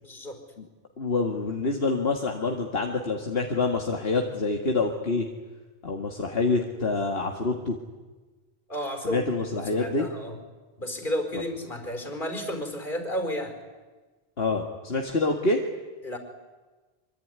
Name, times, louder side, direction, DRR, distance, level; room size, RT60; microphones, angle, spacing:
voice 1, 0.0-0.4 8.7-9.2 9.6-10.3 10.8-13.6 16.0-16.2, equal, 55° left, 6 dB, 4.9 m, -32 dB
voice 2, 1.0-5.3 5.8-7.8 9.0-10.1 11.3-11.4 14.4-15.6, left 3 dB, 75° left, 2 dB, 2.3 m, -26 dB
25.0 x 25.0 x 9.7 m, 1.3 s
omnidirectional pair, 1.0 m